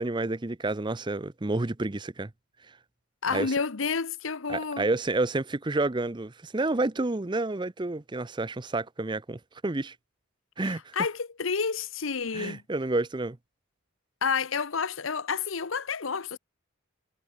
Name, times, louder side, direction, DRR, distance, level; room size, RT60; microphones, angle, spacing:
voice 1, 0.0-2.3 3.3-3.5 4.5-9.9 10.6-10.9 12.3-13.4, right 2 dB, 20° right, 0.6 m, -29 dB
voice 2, 3.2-4.9 10.6-12.6 14.2-16.4, left 5 dB, 75° left, 0.9 m, -30 dB
head